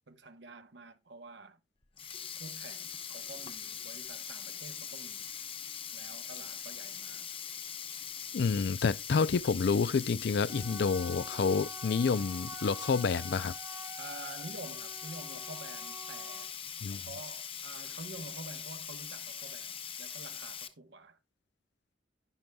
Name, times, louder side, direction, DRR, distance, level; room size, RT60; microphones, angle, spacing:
voice 1, 0.1-1.6 2.4-5.3 5.9-7.3 14.0-16.6 16.8-21.2, right 2 dB, 65° right, 1.0 m, -48 dB
Sink (filling or washing), 1.8-20.7, left 8 dB, 30° left, 0.7 m, -42 dB
voice 2, 8.3-13.5 16.8-17.0, left 5 dB, 60° left, 0.4 m, -29 dB
Wind instrument woodwind instrument, 10.5-16.5, right 2 dB, 15° right, 0.5 m, -48 dB
11.5 x 10.5 x 2.3 m
head